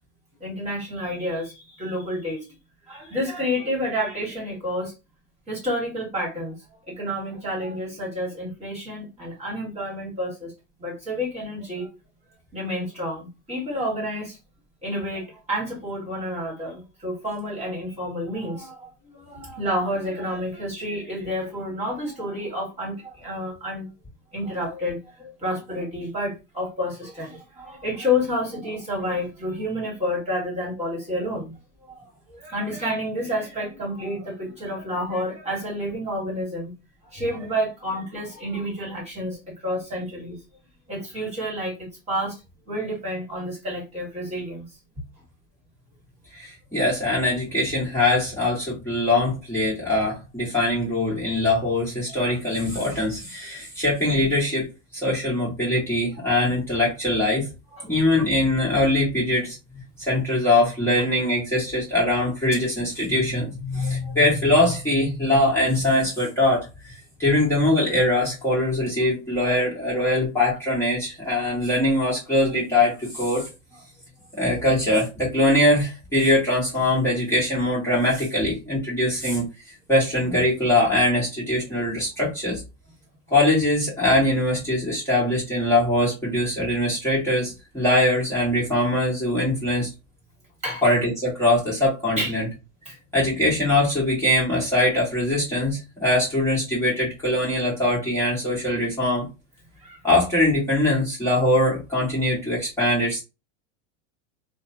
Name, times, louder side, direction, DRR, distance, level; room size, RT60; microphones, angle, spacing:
voice 1, 0.4-2.4 2.9-4.9 5.5-6.6 6.9-10.5 10.8-11.9 12.5-14.4 14.8-23.9 24.3-31.6 31.8-36.7 37.0-40.4 40.9-42.4 42.7-44.7 52.1-52.4 57.7-57.9 63.7-64.2 69.4-69.5 90.6-90.8 92.2-92.3 92.8-92.9 99.8-100.0, left 1 dB, 20° right, 1.7 m, -29 dB
voice 2, 46.3-54.7 54.9-57.5 57.9-59.6 60.0-66.7 67.2-73.5 74.3-79.4 79.9-82.6 83.3-89.9 90.8-92.5 93.1-99.3 100.0-103.2, left 1 dB, 5° left, 1.5 m, -22 dB
2.9 x 2.2 x 2.6 m
supercardioid pair, 125°, 36 cm